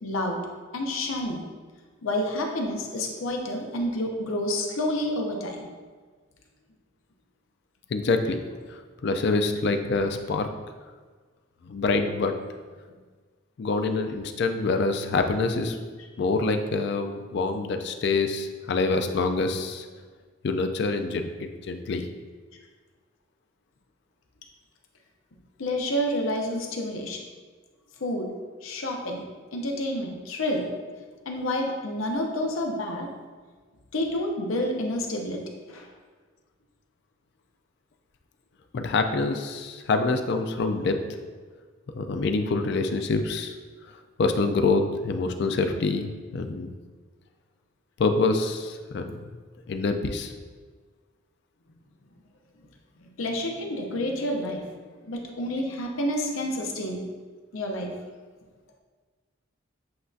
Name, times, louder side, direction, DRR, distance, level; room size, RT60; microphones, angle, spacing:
voice 1, 0.0-0.4 0.7-1.4 2.0-5.7 25.6-27.2 28.0-28.3 28.6-29.2 29.5-30.7 31.3-33.1 33.9-35.4 35.7-35.9 53.2-54.7 55.0-57.0 57.5-57.9, left 1 dB, 80° left, 2 dB, 0.7 m, -29 dB
voice 2, 7.9-8.4 8.7-10.5 11.6-12.4 13.6-15.8 16.2-19.9 20.4-22.0 38.7-41.0 42.0-43.6 44.2-46.7 48.0-49.4 49.7-50.3, left 3 dB, 55° left, 6 dB, 0.3 m, -26 dB
7.7 x 2.6 x 2.4 m, 1.5 s
head